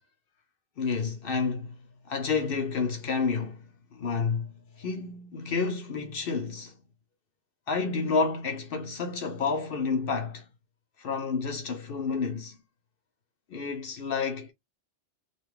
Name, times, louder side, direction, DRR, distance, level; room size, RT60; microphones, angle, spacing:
voice 1, 0.8-1.8 2.1-3.6 3.9-6.8 7.7-10.5 11.0-12.6 13.5-14.5, left 4 dB, 60° left, 0.7 m, -30 dB
2.6 x 2.3 x 3.4 m
omnidirectional pair, 1.2 m